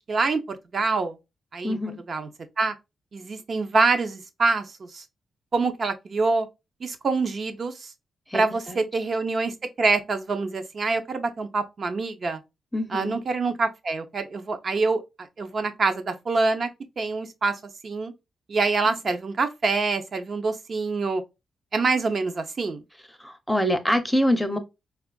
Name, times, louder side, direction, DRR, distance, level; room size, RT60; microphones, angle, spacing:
voice 1, 0.1-1.2 1.5-1.8 2.1-2.3 2.6-2.7 3.1-5.0 5.5-6.5 6.8-7.9 8.3-12.4 12.9-16.7 17.0-18.1 18.5-21.2 21.7-22.8, right 3 dB, 45° right, 0.5 m, -25 dB
voice 2, 1.6-2.0 8.3-8.8 12.7-13.2 23.2-24.6, equal, ahead, 0.6 m, -25 dB
4.3 x 2.4 x 2.2 m
cardioid pair, 110°, 0 cm